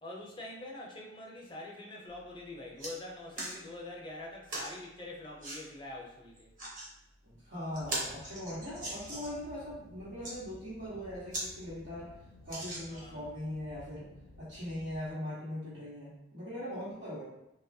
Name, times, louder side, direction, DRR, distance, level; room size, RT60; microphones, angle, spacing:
voice 1, 0.0-6.5 9.1-9.3 12.9-13.3, left 2 dB, 25° left, -2 dB, 0.5 m, -45 dB
sound 1, 2.1-2.2 2.5-2.9 3.3-3.6 4.5-4.7 5.4-5.6 6.4-6.9 7.3-7.4 7.7-9.4 10.0-10.3 10.9-11.0 11.3-11.5 11.8-11.9 12.5-13.2 13.8-13.9, right 1 dB, 45° right, 0.8 m, -39 dB
voice 2, 7.2-12.1 12.4-14.1 14.4-17.2, left 1 dB, 90° right, -12 dB, 1.1 m, -40 dB
sound 2, 7.7-15.1, left 2 dB, 90° left, 0.4 m, -55 dB
3.0 x 2.3 x 2.6 m, 0.86 s
head